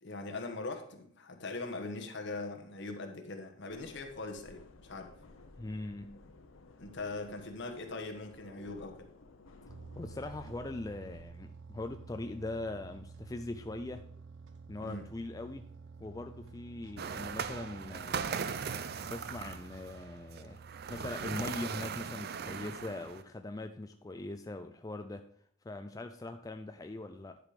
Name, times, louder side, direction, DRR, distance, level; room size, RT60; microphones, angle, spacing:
voice 1, 0.0-5.1 6.8-9.1 14.8-15.0, left 3 dB, 60° left, 4 dB, 1.4 m, -41 dB
sound 1, 3.7-11.2, left 2 dB, 85° left, 0.9 m, -56 dB
voice 2, 5.6-6.2 9.9-14.0 14.7-15.7 16.0-18.6 19.0-20.6 20.9-25.2 25.6-27.4, left 2 dB, 20° left, 7 dB, 0.4 m, -41 dB
sound 2, 9.7-21.2, right 4 dB, 70° right, 0.9 m, -51 dB
sound 3, 17.0-23.2, right 6 dB, 50° right, 0.5 m, -39 dB
10.5 x 5.1 x 5.1 m, 0.65 s
head